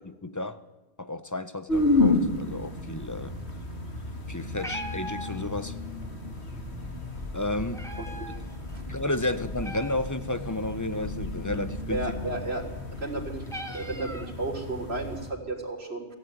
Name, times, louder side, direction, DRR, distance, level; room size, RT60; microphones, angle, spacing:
voice 1, 0.0-0.6 1.0-3.4 4.3-5.8 7.3-7.9 8.9-12.0, left 2 dB, 20° left, 0.8 m, -32 dB
sound 1, 1.7-15.3, left 2 dB, 75° left, 2.6 m, -32 dB
Meow, 4.4-14.8, right 1 dB, 5° left, 2.0 m, -44 dB
voice 2, 8.0-8.3 11.9-12.6 13.0-13.4 13.7-16.1, right 2 dB, 70° right, 3.6 m, -33 dB
21.0 x 15.5 x 9.3 m
omnidirectional pair, 1.1 m